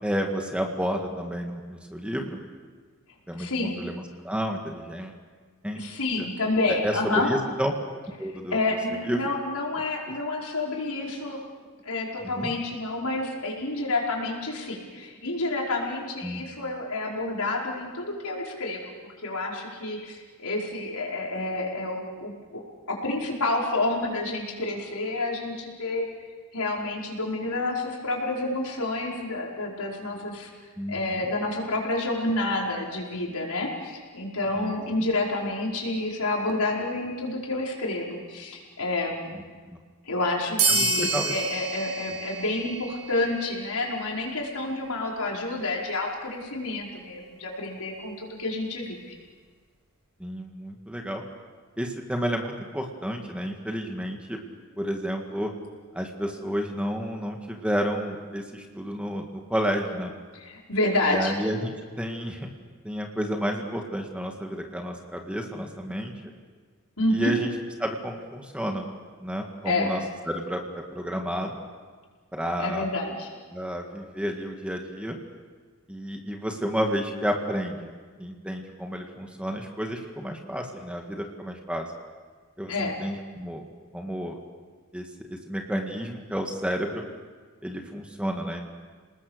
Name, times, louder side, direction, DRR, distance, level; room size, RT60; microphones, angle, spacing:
voice 1, 0.0-2.4 3.3-5.2 5.6-5.8 6.2-6.3 6.7-7.7 8.2-8.6 9.0-9.2 12.2-12.5 16.2-16.4 30.8-31.2 34.5-34.8 39.3-39.4 39.7-39.8 40.7-41.4 50.2-51.2 51.8-54.4 54.8-55.5 55.9-60.1 61.1-62.5 62.8-66.1 67.1-67.5 67.8-68.9 69.2-70.0 70.3-71.6 72.3-72.9 73.5-75.2 75.9-77.9 78.2-81.9 82.6-83.7 83.9-84.4 84.9-85.0 85.3-87.0 87.6-88.7, equal, 5° right, 2 dB, 1.7 m, -31 dB
voice 2, 3.4-3.8 5.8-7.3 8.5-11.4 11.8-22.6 22.9-26.1 26.5-30.5 30.9-39.4 40.1-49.1 60.3-61.3 67.0-67.3 69.7-69.9 72.6-73.3 82.7-82.9, left 2 dB, 85° left, -2 dB, 5.2 m, -29 dB
sound 1, 40.6-43.6, right 3 dB, 75° right, 5.8 m, -28 dB
29.5 x 20.0 x 6.6 m, 1.5 s
head